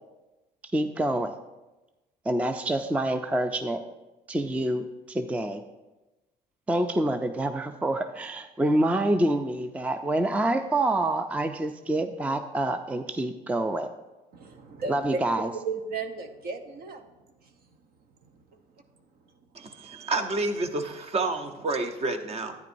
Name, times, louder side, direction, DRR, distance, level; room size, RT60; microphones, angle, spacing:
voice 1, 0.7-1.4 2.3-3.8 4.3-5.6 6.7-13.9 14.9-15.5, right 1 dB, 10° right, 8 dB, 0.4 m, -27 dB
voice 2, 14.3-17.1 17.4-17.5, right 4 dB, 65° right, 7 dB, 0.9 m, -34 dB
voice 3, 19.5-22.5, right 2 dB, 35° right, 7 dB, 0.9 m, -29 dB
10.5 x 9.3 x 2.6 m, 1.1 s
cardioid pair, 110°, 17 cm